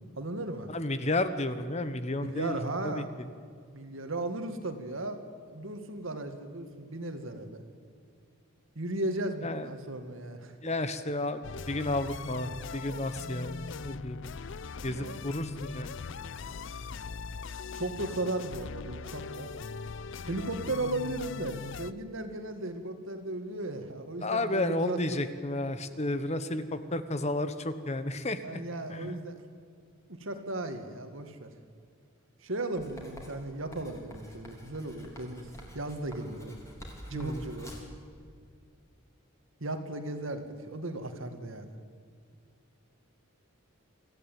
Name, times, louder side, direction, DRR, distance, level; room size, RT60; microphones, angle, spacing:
voice 1, 0.2-0.7 2.2-3.1 3.7-5.2 5.4-7.6 8.8-10.5 14.9-15.1 17.7-19.5 20.3-25.2 28.4-29.4 30.1-31.5 32.4-35.5 35.7-36.6 37.1-37.7 39.6-41.7, right 2 dB, 65° right, 7 dB, 2.1 m, -36 dB
voice 2, 0.7-2.6 2.8-3.0 9.4-9.7 10.6-14.2 14.8-15.9 24.2-28.6 28.9-29.2 37.1-37.4, left 2 dB, 30° left, 11 dB, 1.1 m, -32 dB
sound 1, 11.4-21.9, left 5 dB, 60° left, 0.5 m, -40 dB
Writing, 32.8-38.0, equal, 15° left, 3.7 m, -48 dB
25.0 x 14.5 x 9.3 m, 2.2 s
head